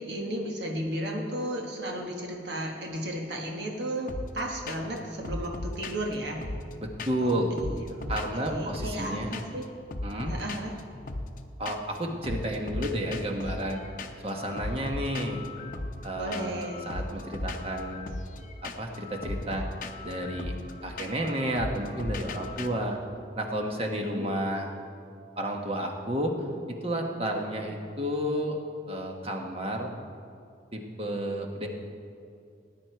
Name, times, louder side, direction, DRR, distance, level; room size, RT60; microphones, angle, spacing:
voice 1, 0.0-6.4 7.2-9.7 10.2-10.7 16.2-16.9 23.9-24.3, right 1 dB, 70° right, 1 dB, 1.4 m, -34 dB
sound 1, 4.1-4.4 4.7-5.0 5.2-7.3 7.6-9.1 9.3-9.6 9.9-12.0 12.2-22.7, left 2 dB, 45° left, 0.7 m, -37 dB
voice 2, 6.8-7.5 8.1-9.3 10.0-10.3 11.6-13.8 14.2-15.4 16.0-18.1 18.6-19.7 20.0-20.5 20.8-23.0 23.4-24.7 25.4-26.3 26.7-28.6 28.9-29.9 30.7-31.7, right 1 dB, 30° right, 2 dB, 1.2 m, -31 dB
18.5 x 9.7 x 4.5 m, 2.5 s
head